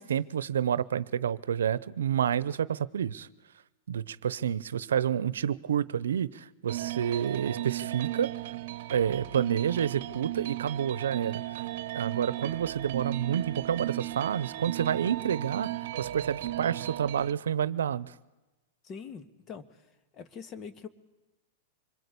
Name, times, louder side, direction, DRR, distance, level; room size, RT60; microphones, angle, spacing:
voice 1, 0.0-3.3 3.9-8.3 8.9-11.4 11.9-18.1, right 9 dB, 85° right, 0.8 m, -29 dB
sound 1, 6.7-17.3, right 15 dB, 65° right, 1.0 m, -36 dB
voice 2, 18.8-20.9, left 6 dB, 30° left, 1.9 m, -44 dB
26.0 x 22.0 x 8.4 m
hypercardioid pair, 120°, 0 cm